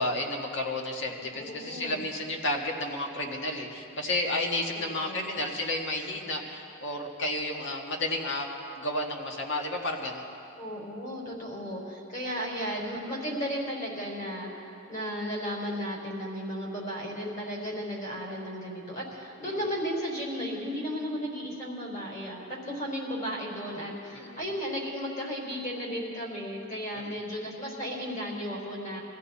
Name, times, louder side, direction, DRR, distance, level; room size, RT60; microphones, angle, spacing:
voice 1, 0.0-8.5 8.8-10.3 19.4-19.6 24.1-24.4 26.9-27.2, left 1 dB, 60° left, 0 dB, 1.8 m, -32 dB
voice 2, 1.2-2.0 5.0-5.3 10.6-29.0, equal, 40° left, -2 dB, 4.1 m, -34 dB
23.0 x 15.0 x 4.2 m, 2.7 s
head